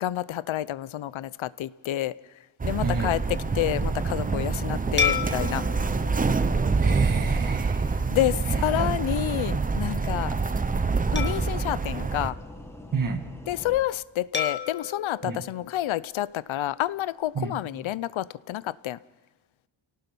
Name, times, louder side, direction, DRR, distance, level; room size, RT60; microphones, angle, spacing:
voice 1, 0.0-2.1 2.6-5.6 8.1-10.3 11.1-12.4 13.5-19.0, left 13 dB, 75° left, 0.7 m, -29 dB
sound 1, 2.6-12.3, right 4 dB, 20° right, 0.6 m, -26 dB
voice 2, 2.8-3.1 6.8-7.9 12.9-13.3 15.2-15.4 17.4-17.5, right 5 dB, 40° right, 1.9 m, -30 dB
sound 2, 3.2-13.8, left 1 dB, 5° left, 1.4 m, -43 dB
sound 3, 5.0-7.7 8.2-8.4 11.2-12.9 14.3-16.6, left 6 dB, 20° left, 1.5 m, -33 dB
29.0 x 18.0 x 5.4 m
wide cardioid pair, 170°, 48 cm